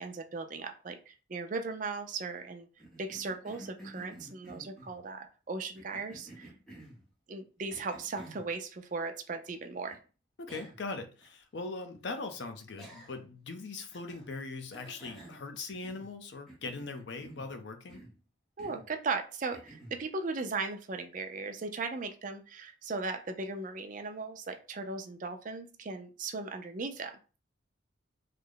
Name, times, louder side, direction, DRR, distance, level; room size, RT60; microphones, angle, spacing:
voice 1, 0.0-2.7 3.0-6.5 7.3-10.0 18.6-27.1, right 4 dB, 40° right, 6 dB, 0.4 m, -37 dB
Cough, 2.8-5.0 5.7-7.0 7.7-8.5 9.9-10.0 10.5-10.9 11.2-11.3 12.8-13.3 13.9-14.3 14.7-16.2 16.5-17.5 17.9-18.2 18.6-18.9 19.5-20.0, right 1 dB, ahead, 0.8 m, -51 dB
voice 2, 10.4-18.0, left 3 dB, 65° left, 6 dB, 0.6 m, -40 dB
3.2 x 2.0 x 3.8 m, 0.35 s
head